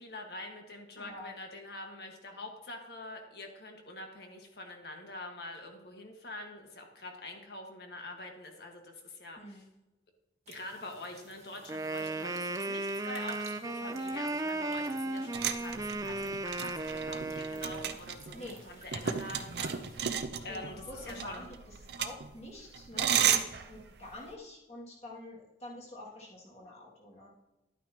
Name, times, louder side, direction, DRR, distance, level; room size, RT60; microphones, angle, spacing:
voice 1, 0.0-9.7 10.5-20.0 20.4-21.5, left 2 dB, 65° left, 2 dB, 1.7 m, -45 dB
voice 2, 1.0-1.3 9.4-9.7 18.3-18.7 19.0-19.1 20.2-27.3, left 1 dB, 35° left, -4 dB, 2.4 m, -47 dB
sound 1, 10.5-20.0, right 3 dB, 35° right, 1.5 m, -53 dB
Wind instrument woodwind instrument, 11.7-18.0, right 2 dB, 20° right, 0.4 m, -35 dB
sound 2, 15.3-24.3, right 8 dB, 70° right, 0.7 m, -34 dB
11.5 x 9.0 x 3.0 m, 1.0 s
head